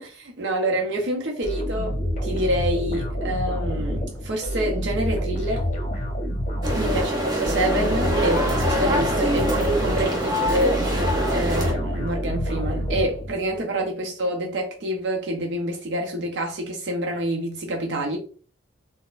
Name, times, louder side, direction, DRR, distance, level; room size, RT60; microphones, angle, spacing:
voice 1, 0.0-5.6 6.8-18.2, right 1 dB, 65° right, 0.6 m, -27 dB
sound 1, 1.4-13.6, equal, 40° left, 0.8 m, -28 dB
sound 2, 6.6-11.7, equal, 20° right, 0.7 m, -24 dB
3.9 x 2.1 x 2.4 m
head